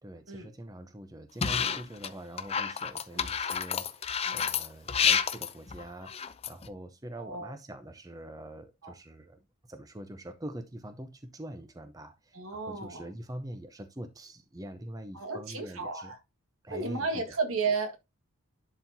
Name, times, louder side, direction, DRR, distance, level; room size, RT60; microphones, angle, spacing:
voice 1, 0.0-9.4 9.7-16.1 16.6-17.3, right 1 dB, 15° right, 0.7 m, -44 dB
sound 1, 1.4-2.1 2.4-6.7, left 7 dB, 25° left, 0.5 m, -29 dB
voice 2, 7.2-7.5 8.8-8.9 12.3-13.1 15.1-16.2 16.7-18.0, right 4 dB, 70° right, 1.7 m, -33 dB
11.0 x 4.4 x 2.7 m
head